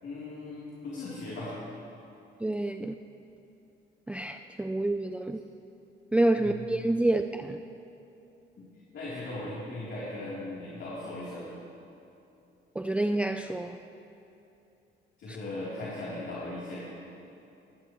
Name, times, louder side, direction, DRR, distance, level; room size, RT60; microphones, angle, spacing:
voice 1, 0.0-1.5 6.3-6.7 8.6-8.7 8.9-11.6 15.2-16.9, left 2 dB, 65° left, -8 dB, 3.4 m, -38 dB
voice 2, 2.4-2.9 4.1-5.4 6.1-7.6 12.8-13.8, right 1 dB, 5° right, 6 dB, 0.4 m, -28 dB
20.0 x 16.0 x 3.1 m, 2.8 s
cardioid pair, 90°, 20 cm